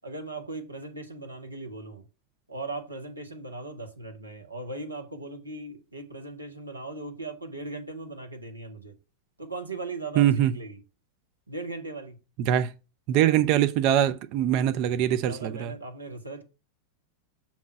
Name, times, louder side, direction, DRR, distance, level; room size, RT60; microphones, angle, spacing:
voice 1, 0.0-2.1 2.5-8.9 9.4-10.8 11.5-12.2 13.1-13.4 15.2-16.4, right 2 dB, 80° right, 1.3 m, -38 dB
voice 2, 10.2-10.5 12.4-12.7 13.1-15.7, right 11 dB, 40° right, 0.5 m, -23 dB
7.1 x 3.0 x 5.8 m
figure-of-eight pair, 90°, 0 cm